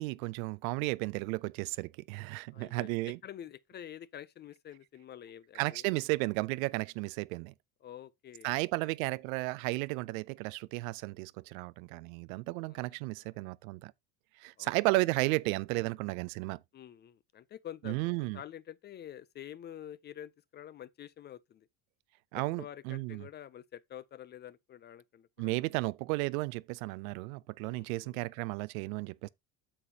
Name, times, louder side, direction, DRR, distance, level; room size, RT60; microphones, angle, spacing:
voice 1, 0.0-3.2 5.6-7.5 8.4-13.9 14.4-16.6 17.8-18.4 22.3-23.3 25.4-29.3, right 23 dB, 85° right, 0.6 m, -33 dB
voice 2, 2.5-5.9 7.8-9.0 12.6-13.4 14.6-14.7 16.7-21.7 22.3-25.6 27.6-28.2, left 10 dB, 30° left, 0.3 m, -48 dB
8.7 x 6.8 x 2.8 m
supercardioid pair, 120°, 40 cm